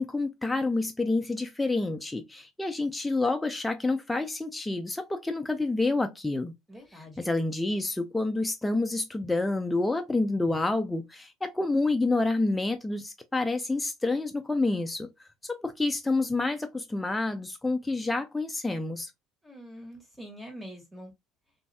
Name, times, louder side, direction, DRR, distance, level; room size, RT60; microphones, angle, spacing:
voice 1, 0.0-6.5 7.2-15.1 15.4-19.1, left 2 dB, 10° left, 0.4 m, -28 dB
voice 2, 6.7-7.3 19.4-21.1, equal, 5° right, 1.5 m, -45 dB
3.1 x 2.6 x 2.2 m
supercardioid pair, 90°, 0 cm